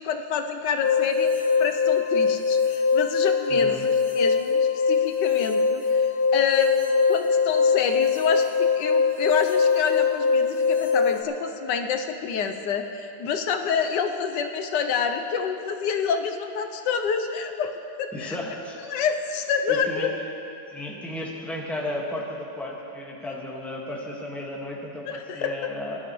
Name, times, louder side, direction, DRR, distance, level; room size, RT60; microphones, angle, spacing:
voice 1, 0.0-6.1 6.3-17.7 18.0-18.4 18.8-20.1 25.1-25.6, left 6 dB, 85° left, 6 dB, 1.3 m, -28 dB
sound 1, 0.8-11.2, left 5 dB, 40° left, 0.8 m, -22 dB
voice 2, 3.5-3.8 18.1-18.8 19.7-20.1 20.7-26.1, left 1 dB, ahead, -4 dB, 1.4 m, -34 dB
19.5 x 12.0 x 3.1 m, 2.8 s
omnidirectional pair, 1.8 m